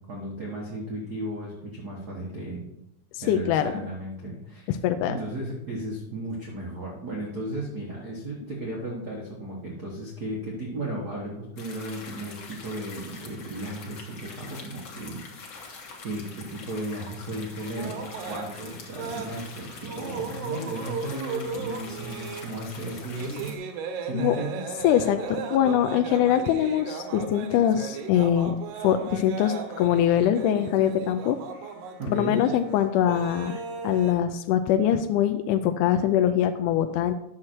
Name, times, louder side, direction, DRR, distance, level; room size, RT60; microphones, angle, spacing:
voice 1, 0.0-2.6 3.2-4.8 5.1-15.2 16.0-23.5 24.0-24.6 32.0-32.4, right 1 dB, 85° right, -3 dB, 0.8 m, -35 dB
voice 2, 3.3-3.7 4.7-5.1 24.1-24.4 24.8-28.6 28.8-31.4 32.1-37.1, left 10 dB, 85° left, 8 dB, 1.8 m, -23 dB
sound 1, 11.6-23.5, left 4 dB, 55° left, 1.5 m, -44 dB
sound 2, 17.7-34.1, right 5 dB, 70° right, 2.0 m, -36 dB
9.6 x 6.5 x 4.4 m, 0.85 s
omnidirectional pair, 4.1 m